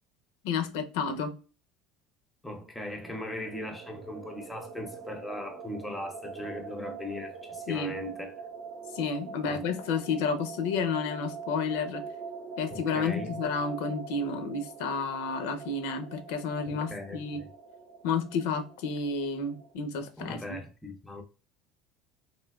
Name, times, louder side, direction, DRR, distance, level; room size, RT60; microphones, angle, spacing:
voice 1, 0.4-1.3 7.7-8.0 8.9-12.0 12.6-17.4 18.0-20.6, left 5 dB, 75° left, 0.5 m, -31 dB
voice 2, 2.4-8.3 9.5-9.6 12.7-13.3 16.7-17.5 20.2-21.2, left 1 dB, 5° left, 0.5 m, -39 dB
sound 1, 2.8-19.7, right 5 dB, 85° right, 0.8 m, -44 dB
3.1 x 2.7 x 2.2 m
cardioid pair, 170°, 0 cm